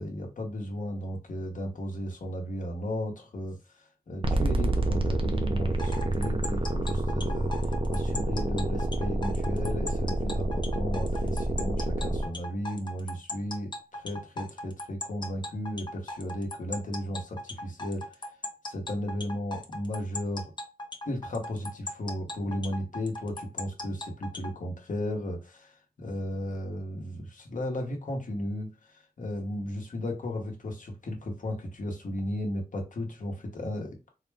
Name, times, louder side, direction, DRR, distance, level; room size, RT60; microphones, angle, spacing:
voice 1, 0.0-18.1 18.6-20.5 21.0-34.1, left 1 dB, 60° left, 1.0 m, -35 dB
sound 1, 4.2-12.3, right 1 dB, 35° right, 0.5 m, -28 dB
sound 2, 5.8-24.5, left 1 dB, 30° left, 0.6 m, -38 dB
4.0 x 2.2 x 3.3 m
wide cardioid pair, 135°, 15 cm